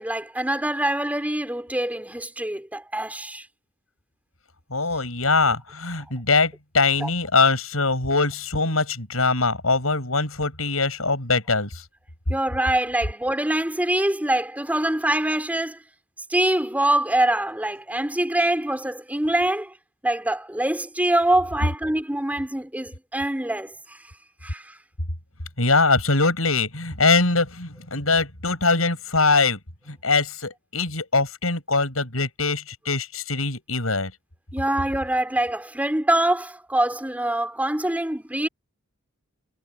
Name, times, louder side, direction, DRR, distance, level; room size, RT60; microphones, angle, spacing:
voice 1, 0.0-3.5 7.0-7.1 12.3-15.8 16.3-19.7 20.0-24.0 24.4-24.8 34.5-38.5, right 1 dB, 10° right, 3.5 m, -24 dB
voice 2, 4.7-11.9 25.6-29.6 29.9-34.1, left 3 dB, 90° left, 7.5 m, -22 dB
head